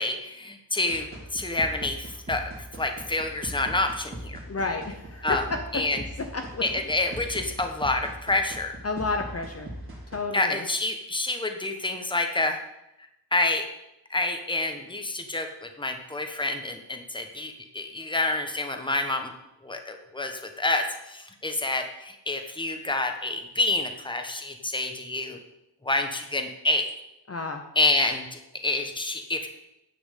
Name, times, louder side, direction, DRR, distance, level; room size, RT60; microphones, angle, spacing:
voice 1, 0.0-2.5 2.8-4.4 5.2-5.4 5.7-6.0 6.6-8.8 10.3-12.6 13.3-13.7 14.1-19.3 19.6-25.4 25.8-26.9 27.7-29.5, left 2 dB, 10° left, 5 dB, 1.2 m, -28 dB
sound 1, 0.9-10.2, right 1 dB, 30° right, 2.8 m, -40 dB
voice 2, 4.5-6.6 8.8-9.7 10.1-10.6 27.3-27.6, left 3 dB, 35° left, 4 dB, 1.0 m, -31 dB
9.8 x 6.0 x 8.4 m, 0.87 s
wide cardioid pair, 135°, 43 cm